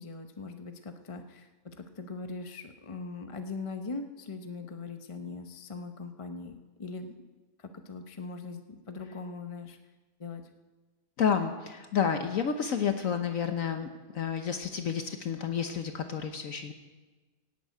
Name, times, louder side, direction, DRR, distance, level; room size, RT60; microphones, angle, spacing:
voice 1, 0.0-6.5 6.8-7.2 7.6-9.8 10.2-10.4, left 4 dB, 30° left, 6 dB, 0.7 m, -40 dB
voice 2, 11.2-16.7, left 7 dB, 65° left, 6 dB, 1.3 m, -30 dB
17.0 x 8.4 x 9.1 m, 1.2 s
omnidirectional pair, 1.6 m